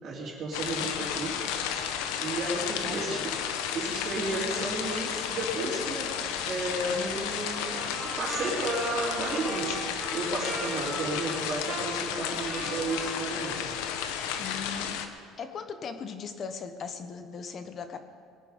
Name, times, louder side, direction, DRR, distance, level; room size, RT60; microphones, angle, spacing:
voice 1, 0.0-1.4 2.2-3.3 3.7-6.1 6.5-9.8 10.1-13.7 14.1-14.4, right 2 dB, 40° right, -7 dB, 3.1 m, -33 dB
sound 1, 0.5-15.1, left 8 dB, 90° left, 1.0 m, -33 dB
voice 2, 2.8-3.3 14.4-15.0 15.4-18.0, left 6 dB, 35° left, 9 dB, 1.2 m, -39 dB
Trumpet, 7.5-14.1, right 3 dB, 20° right, 1.3 m, -41 dB
21.5 x 9.5 x 5.2 m, 2.1 s
cardioid pair, 140°, 0 cm